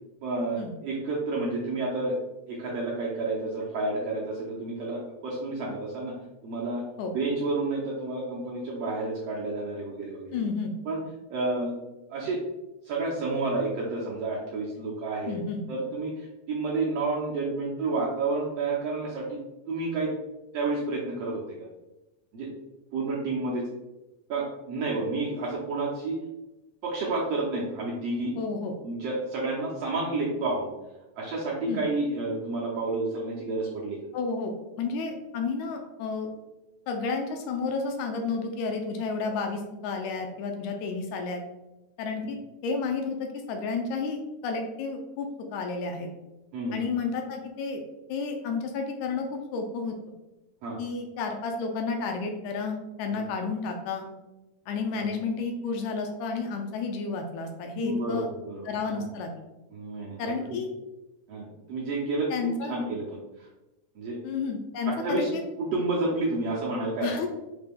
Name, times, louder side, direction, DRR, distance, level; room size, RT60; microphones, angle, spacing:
voice 1, 0.2-2.2 2.5-6.1 6.4-6.8 7.1-10.4 10.8-11.0 11.3-11.7 12.1-12.4 12.8-15.4 15.7-19.4 19.7-20.1 20.5-21.6 22.3-22.5 22.9-23.7 24.3-26.2 26.8-28.3 28.8-30.7 31.2-34.0 42.2-42.3 46.5-46.9 50.6-50.8 53.1-53.2 55.0-55.1 57.8-59.0 59.7-60.6 61.3-63.5 63.9-64.2 65.0-65.3 65.6-67.2, right 2 dB, 75° right, -5 dB, 1.5 m, -30 dB
voice 2, 10.3-10.7 15.3-15.6 28.4-28.7 31.7-31.8 34.1-34.5 34.8-36.3 36.9-41.4 42.0-46.1 46.7-47.8 48.1-49.9 50.8-54.1 54.7-58.3 58.7-59.3 60.2-60.7 62.3-62.8 64.2-65.4 67.0-67.3, left 4 dB, 80° left, 4 dB, 1.8 m, -31 dB
5.7 x 2.2 x 3.5 m, 1.0 s
omnidirectional pair, 3.5 m